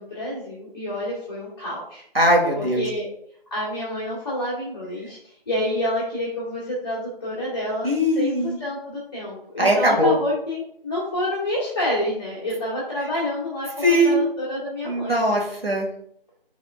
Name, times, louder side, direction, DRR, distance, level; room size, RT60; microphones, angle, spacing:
voice 1, 0.0-2.0 2.5-3.1 3.5-7.9 8.1-15.2, left 1 dB, 25° left, -9 dB, 1.9 m, -28 dB
voice 2, 2.1-2.8 7.8-8.6 9.6-10.1 13.8-14.2 14.9-15.9, equal, 80° right, -1 dB, 2.1 m, -20 dB
9.6 x 4.3 x 2.4 m, 0.69 s
figure-of-eight pair, 160°, 29 cm